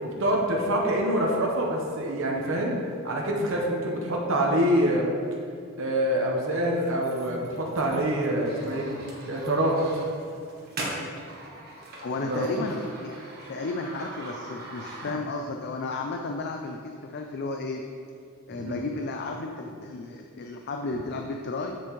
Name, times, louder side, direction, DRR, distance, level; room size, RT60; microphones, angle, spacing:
voice 1, 0.0-2.8 3.0-5.1 5.8-9.8 12.3-12.7 18.6-18.8, right 1 dB, 65° right, -2 dB, 1.0 m, -26 dB
sound 1, 6.7-15.5, right 1 dB, 45° right, 1.4 m, -41 dB
voice 2, 12.0-13.2 13.5-17.9 18.5-21.8, left 3 dB, 50° left, 3 dB, 0.4 m, -33 dB
7.9 x 6.9 x 3.1 m, 2.3 s
head